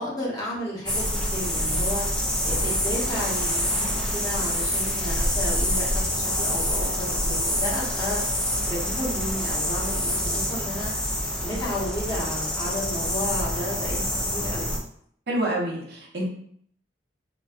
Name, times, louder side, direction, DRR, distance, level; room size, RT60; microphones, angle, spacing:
voice 1, 0.0-10.9 11.4-14.7, left 1 dB, 20° left, -6 dB, 1.0 m, -33 dB
sound 1, 0.9-14.8, equal, 5° left, 0.4 m, -26 dB
voice 2, 15.3-16.2, right 1 dB, 60° right, -3 dB, 0.8 m, -27 dB
3.9 x 2.3 x 2.4 m, 0.64 s
head